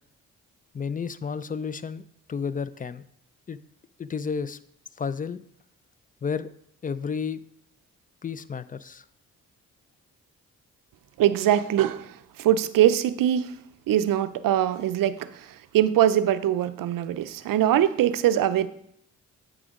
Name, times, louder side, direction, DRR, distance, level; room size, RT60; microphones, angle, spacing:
voice 1, 0.7-2.0 2.3-3.0 3.5-3.6 4.0-4.6 5.0-5.4 6.2-6.5 6.8-7.4 8.2-9.0, left 6 dB, 25° left, 16 dB, 0.4 m, -31 dB
voice 2, 11.2-13.5 13.9-18.7, right 11 dB, 65° right, 14 dB, 0.5 m, -22 dB
8.4 x 4.9 x 3.6 m, 0.70 s
hypercardioid pair, 40°, 37 cm